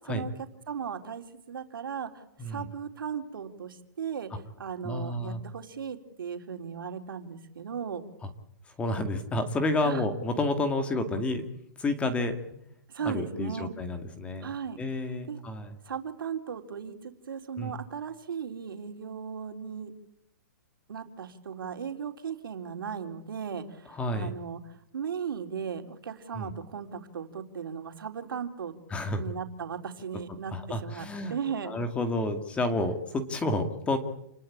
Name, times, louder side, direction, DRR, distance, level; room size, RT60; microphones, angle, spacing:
voice 1, 0.7-8.0 9.8-10.1 12.9-13.7 14.4-14.8 15.3-15.4 15.8-19.9 20.9-28.7 29.2-31.7, right 7 dB, 80° right, 6 dB, 3.8 m, -37 dB
voice 2, 4.8-5.4 8.8-11.5 11.8-12.4 13.0-14.5 14.8-15.7 17.6-17.7 23.9-24.3 26.3-26.5 28.9-29.2 30.5-31.4 31.6-34.0, left 2 dB, 10° left, 8 dB, 2.1 m, -30 dB
29.0 x 21.0 x 8.7 m, 0.79 s
hypercardioid pair, 160°, 11 cm